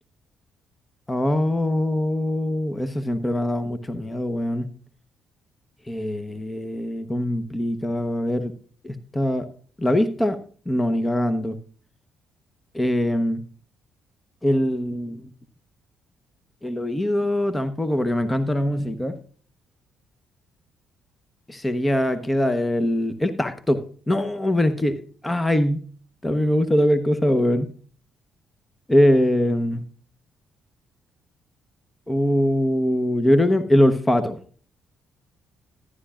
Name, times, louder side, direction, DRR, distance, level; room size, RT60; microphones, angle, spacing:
voice 1, 1.1-4.7 5.9-8.5 8.8-9.5 9.8-10.4 10.7-11.6 12.7-13.4 14.4-15.3 16.6-19.2 21.5-25.8 26.2-27.7 28.9-29.8 32.1-34.4, left 1 dB, 15° left, 10 dB, 1.0 m, -22 dB
14.0 x 11.0 x 2.5 m, 0.43 s
supercardioid pair, 70°, 0 cm